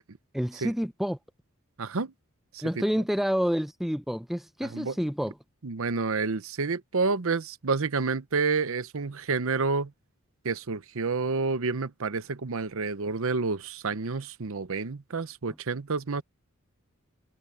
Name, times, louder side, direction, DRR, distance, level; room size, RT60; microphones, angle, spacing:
voice 1, 0.3-1.2 2.6-5.3, equal, ahead, 0.5 m, -28 dB
voice 2, 1.8-2.1 2.5-2.6 4.6-5.0 5.6-9.9 10.4-16.2, right 4 dB, 65° right, 0.8 m, -29 dB
head